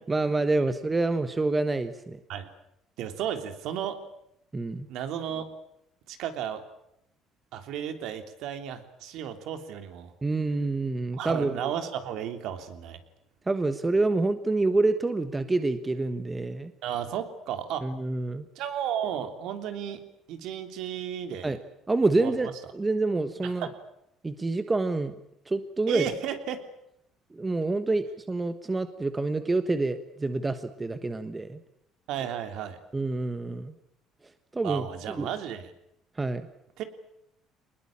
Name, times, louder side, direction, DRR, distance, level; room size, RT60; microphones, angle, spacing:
voice 1, 0.1-2.2 4.5-4.9 10.2-11.7 13.5-16.7 17.8-18.5 21.4-21.6 21.9-23.7 24.2-25.1 25.5-26.0 27.3-31.6 32.9-33.7 34.5-34.9 35.2-35.3 36.2-36.4, right 2 dB, 15° right, 10 dB, 1.3 m, -27 dB
voice 2, 3.0-4.0 4.9-5.5 6.1-6.6 7.5-10.1 11.2-13.0 16.8-17.9 18.5-20.0 20.3-21.6 22.2-22.3 23.4-23.7 25.9-26.6 32.1-32.8 34.6-35.7 36.8-36.9, right 9 dB, 75° right, 7 dB, 3.2 m, -33 dB
24.5 x 20.5 x 8.8 m, 0.80 s
cardioid pair, 120°, 0 cm